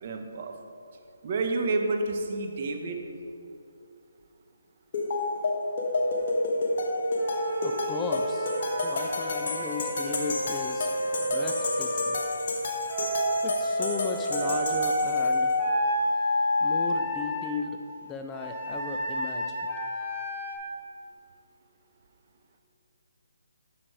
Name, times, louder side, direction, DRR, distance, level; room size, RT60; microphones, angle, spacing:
voice 1, 0.0-0.5 1.2-3.0, right 3 dB, 40° right, 3 dB, 1.0 m, -29 dB
sound 1, 4.9-15.6, left 2 dB, 45° left, 1.2 m, -30 dB
Wind instrument woodwind instrument, 7.2-12.2 12.9-17.6 18.3-20.6, equal, ahead, 2.0 m, -29 dB
voice 2, 7.6-8.5 8.8-12.2 13.4-15.6 16.6-19.5, left 4 dB, 15° left, 3 dB, 0.4 m, -36 dB
8.7 x 6.0 x 4.7 m, 2.6 s
figure-of-eight pair, 150°, 0 cm